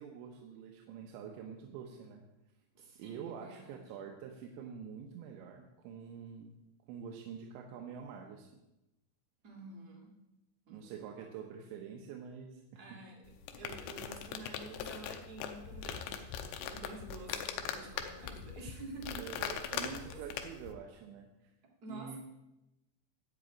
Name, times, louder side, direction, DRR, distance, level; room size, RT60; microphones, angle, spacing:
voice 1, 0.0-2.2 3.0-6.6 6.9-8.5 10.7-13.0 19.2-21.5 21.9-22.2, right 7 dB, 90° right, 2 dB, 3.3 m, -46 dB
voice 2, 2.7-3.9 9.4-10.1 10.6-11.2 12.7-13.2 13.6-19.2 19.5-19.6 20.1-20.2 21.8-22.2, right 3 dB, 40° right, 0 dB, 1.4 m, -49 dB
sound 1, 13.3-20.7, left 8 dB, 85° left, 3.0 m, -41 dB
13.0 x 4.9 x 8.3 m, 0.94 s
omnidirectional pair, 5.1 m